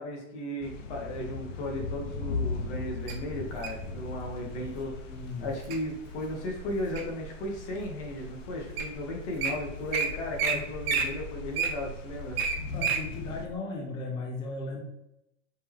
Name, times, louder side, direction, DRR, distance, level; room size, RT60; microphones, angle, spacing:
voice 1, 0.0-5.1 5.4-12.4, left 1 dB, 65° left, 0 dB, 1.5 m, -35 dB
sound 1, 0.6-13.5, left 4 dB, 85° left, 0.9 m, -39 dB
Wild animals, 3.1-3.8 4.5-4.8 5.3-5.8 6.3-7.2 7.8-7.9 8.5-8.6 8.8-8.9 9.2-9.5 9.9-10.1 10.4-10.5 10.8-13.0 13.5-13.6, right 6 dB, 50° right, 1.0 m, -29 dB
voice 2, 4.5-5.5 10.5-10.7 12.7-14.8, left 3 dB, 15° left, 1 dB, 0.4 m, -37 dB
4.5 x 3.0 x 3.4 m, 0.84 s
supercardioid pair, 140°, 36 cm